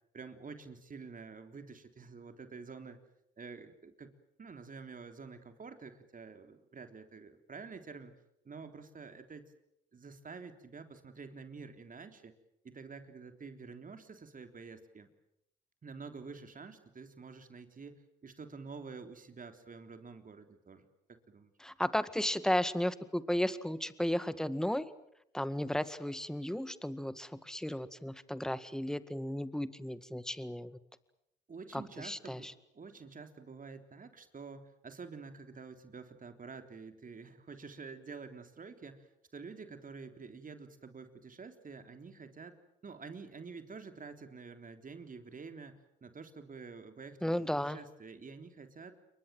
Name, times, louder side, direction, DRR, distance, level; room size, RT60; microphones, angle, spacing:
voice 1, 0.1-3.0 3.4-4.1 4.4-8.1 8.5-9.5 9.9-12.3 12.6-15.1 15.8-21.5 31.5-42.6 42.8-47.3 47.6-48.9, right 4 dB, 40° right, 7 dB, 3.6 m, -48 dB
voice 2, 21.6-24.9 25.3-30.8 31.7-32.5 47.2-47.8, left 1 dB, 5° left, 14 dB, 1.9 m, -34 dB
28.0 x 23.5 x 7.8 m, 0.78 s
hypercardioid pair, 55°, 21 cm